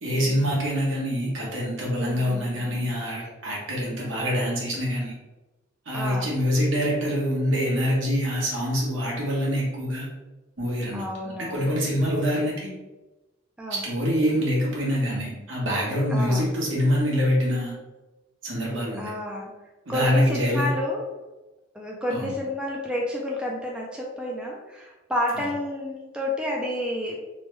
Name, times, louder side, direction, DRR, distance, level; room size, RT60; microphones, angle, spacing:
voice 1, 0.0-5.1 5.8-10.1 10.6-11.1 11.4-12.7 13.7-17.7 18.4-19.1 19.9-20.7 22.1-22.3 25.3-25.4, equal, 70° right, -4 dB, 1.1 m, -25 dB
voice 2, 2.0-2.5 5.9-6.4 10.9-11.7 13.6-13.8 16.1-16.5 19.0-19.5 19.9-21.1 21.7-27.2, left 1 dB, 5° right, -2 dB, 0.3 m, -30 dB
3.0 x 2.1 x 3.1 m, 1.1 s
head